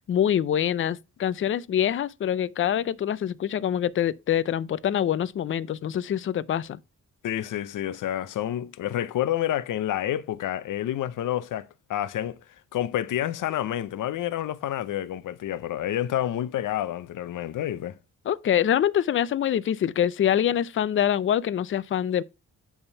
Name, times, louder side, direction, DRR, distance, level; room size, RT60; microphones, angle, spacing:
voice 1, 0.1-6.8 18.3-22.2, left 10 dB, 40° left, 0.5 m, -25 dB
voice 2, 7.2-12.4 12.7-18.0, left 12 dB, 85° left, 0.7 m, -29 dB
9.7 x 3.6 x 5.6 m
wide cardioid pair, 135°, 31 cm